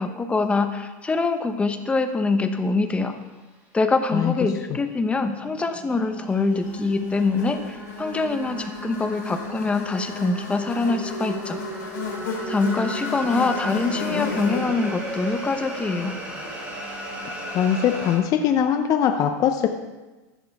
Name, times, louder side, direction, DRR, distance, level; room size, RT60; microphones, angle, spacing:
voice 1, 0.0-3.2 3.7-11.6 12.5-16.1, left 3 dB, 10° left, 8 dB, 0.9 m, -24 dB
sound 1, 4.9-18.2, right 1 dB, 15° right, 3.2 m, -36 dB
Buzz, 6.6-17.1, left 5 dB, 80° left, 3.2 m, -34 dB
voice 2, 17.5-19.7, left 9 dB, 35° left, 6 dB, 0.7 m, -21 dB
14.5 x 11.0 x 3.6 m, 1.2 s
supercardioid pair, 135°, 9 cm